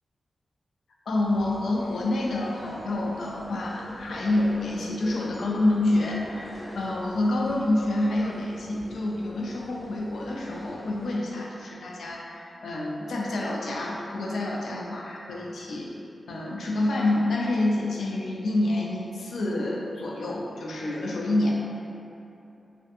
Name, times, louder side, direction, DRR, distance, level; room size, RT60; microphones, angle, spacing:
voice 1, 1.1-15.9 16.3-21.5, left 1 dB, 90° left, -3 dB, 0.3 m, -27 dB
sound 1, 1.2-11.1, left 1 dB, 30° left, 0.5 m, -45 dB
2.5 x 2.5 x 2.5 m, 2.8 s
wide cardioid pair, 105°, 0 cm